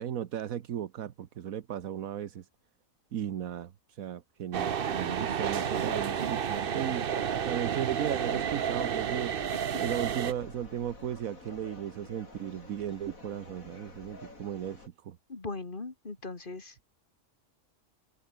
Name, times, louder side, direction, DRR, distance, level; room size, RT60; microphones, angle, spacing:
voice 1, 0.0-2.5 3.1-7.1 7.4-9.4 9.8-15.2, right 10 dB, 80° right, 1.4 m, -36 dB
sound 1, 4.5-10.3, right 8 dB, 45° right, 0.9 m, -31 dB
sound 2, 4.7-14.9, left 3 dB, 80° left, 4.7 m, -50 dB
voice 2, 15.3-16.7, left 3 dB, 40° left, 2.0 m, -39 dB
omnidirectional pair, 1.4 m